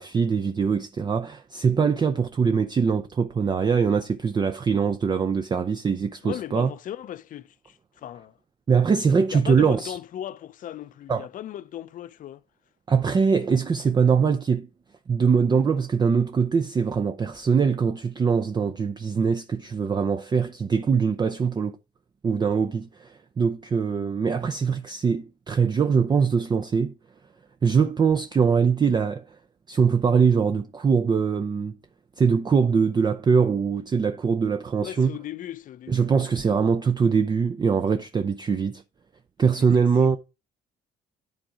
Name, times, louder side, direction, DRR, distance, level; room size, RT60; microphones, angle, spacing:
voice 1, 0.0-6.7 8.7-10.0 11.1-11.3 12.9-14.7 15.1-21.8 22.2-27.0 27.6-29.4 29.7-31.8 32.2-35.1 35.9-38.8 39.4-40.2, right 6 dB, 25° right, 0.5 m, -22 dB
voice 2, 6.2-8.4 9.3-12.4 34.8-36.1 39.6-39.7 40.0-40.2, left 11 dB, 50° left, 0.5 m, -37 dB
10.5 x 3.7 x 5.0 m
cardioid pair, 110°, 17 cm